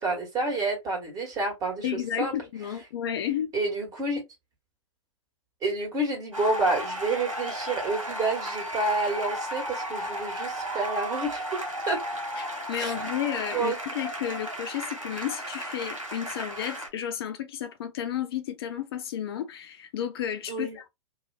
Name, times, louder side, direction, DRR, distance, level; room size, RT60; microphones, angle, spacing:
voice 1, 0.0-2.3 3.5-4.2 5.6-11.6 11.9-12.0 12.8-13.1 13.5-13.8 20.5-20.8, right 2 dB, 20° right, 1.5 m, -29 dB
voice 2, 1.8-3.5 12.3-20.9, left 10 dB, 50° left, 0.5 m, -32 dB
sound 1, 6.3-16.9, equal, 90° right, 1.2 m, -34 dB
2.8 x 2.4 x 2.3 m
figure-of-eight pair, 105°, 17 cm